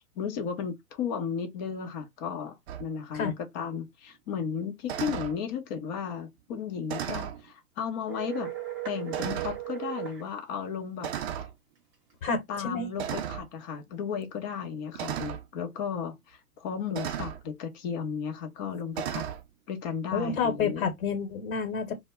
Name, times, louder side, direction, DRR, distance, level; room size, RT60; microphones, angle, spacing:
voice 1, 0.0-8.5 8.8-11.1 12.5-19.2 19.7-20.9, left 7 dB, 30° left, 0.6 m, -34 dB
sound 1, 2.7-2.9 4.9-5.4 6.9-7.4 8.3-8.4 9.1-9.6 11.0-11.5 13.0-13.5 14.9-15.4 16.9-17.4 18.9-19.4, right 9 dB, 50° right, 0.4 m, -34 dB
sound 2, 8.1-10.2, right 13 dB, 25° right, 0.8 m, -36 dB
voice 2, 12.2-12.9 20.1-21.9, left 5 dB, 65° left, 1.1 m, -29 dB
2.1 x 2.0 x 3.3 m
figure-of-eight pair, 105°, 45 cm